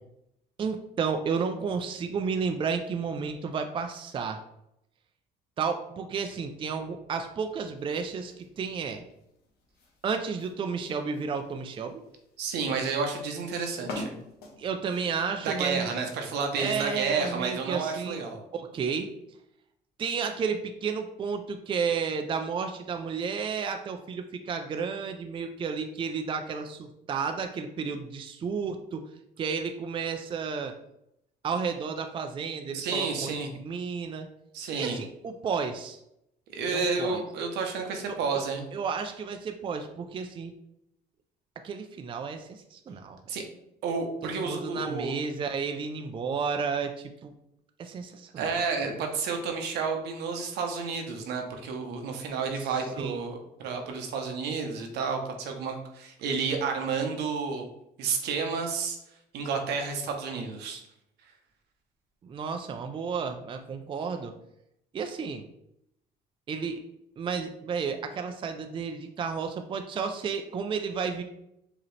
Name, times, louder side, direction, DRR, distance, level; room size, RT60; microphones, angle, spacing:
voice 1, 0.6-4.4 5.6-9.0 10.0-12.0 14.6-15.9 16.6-18.2 18.5-19.1 20.0-29.0 29.4-30.8 31.4-34.3 34.7-36.0 36.7-37.2 38.1-38.4 38.7-40.5 41.6-43.2 44.2-47.3 47.8-48.6 52.6-52.7 53.0-53.2 62.2-64.3 64.9-65.4 66.5-66.8 67.2-71.2, right 5 dB, 30° right, 6 dB, 0.4 m, -32 dB
sound 1, 7.8-15.4, left 2 dB, 70° left, 1.2 m, -46 dB
voice 2, 12.4-14.1 15.4-18.4 32.7-33.5 34.5-35.0 36.5-38.7 43.3-43.4 43.8-45.1 48.4-57.6 58.0-59.0 59.3-60.8, right 5 dB, 80° right, 3 dB, 0.9 m, -31 dB
4.9 x 2.9 x 3.2 m, 0.79 s
cardioid pair, 110°, 17 cm